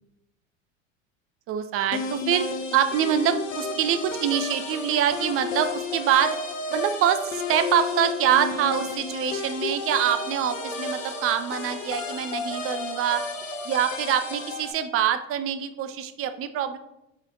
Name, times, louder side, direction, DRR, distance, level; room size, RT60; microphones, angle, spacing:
voice 1, 1.5-6.4 6.7-13.3 13.6-16.8, right 9 dB, 35° right, 10 dB, 0.5 m, -25 dB
sound 1, 1.9-14.7, left 3 dB, 90° left, 0.7 m, -32 dB
4.1 x 3.3 x 3.7 m, 0.86 s
hypercardioid pair, 75°, 38 cm